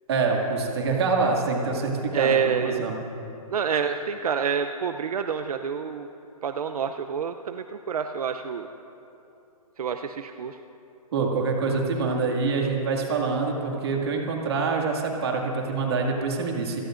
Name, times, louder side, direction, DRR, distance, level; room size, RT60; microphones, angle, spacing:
voice 1, 0.1-3.0 11.1-16.8, right 4 dB, 45° right, 0 dB, 2.2 m, -25 dB
voice 2, 2.1-2.8 3.5-6.1 6.4-8.7 9.8-10.6, right 7 dB, 80° right, 7 dB, 0.7 m, -27 dB
27.0 x 18.0 x 2.6 m, 2.8 s
hypercardioid pair, 175°, 19 cm